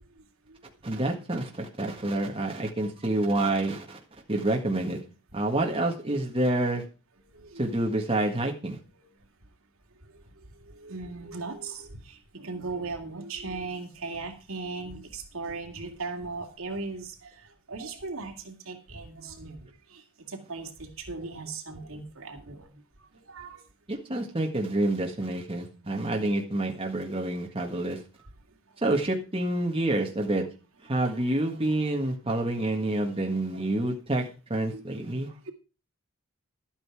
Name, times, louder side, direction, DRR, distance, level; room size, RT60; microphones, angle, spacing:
voice 1, 0.8-4.0 4.3-5.0 5.3-6.8 7.6-8.8 23.9-28.0 28.8-30.4 30.8-34.2 34.5-35.3, right 1 dB, 25° right, 1 dB, 1.7 m, -28 dB
voice 2, 7.4-7.7 8.9-9.1 10.7-12.0 12.3-17.3 17.7-19.6 19.9-20.0 20.3-22.7 23.3-23.6 25.4-25.5 25.9-26.0 34.7-35.0, right 3 dB, 75° right, 2 dB, 2.5 m, -38 dB
12.0 x 9.0 x 4.8 m, 0.34 s
head